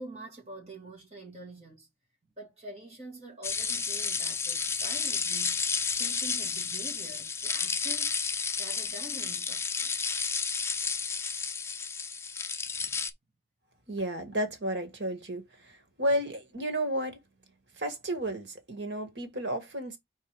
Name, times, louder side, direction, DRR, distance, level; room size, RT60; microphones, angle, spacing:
voice 1, 0.0-1.9 2.4-5.6 5.9-8.2 8.6-10.1, right 1 dB, 35° right, 2.8 m, -46 dB
sound 1, 3.4-13.1, left 5 dB, 15° left, 0.5 m, -31 dB
voice 2, 13.9-17.2 17.8-20.0, right 1 dB, 85° right, 2.0 m, -32 dB
4.5 x 4.2 x 5.0 m
head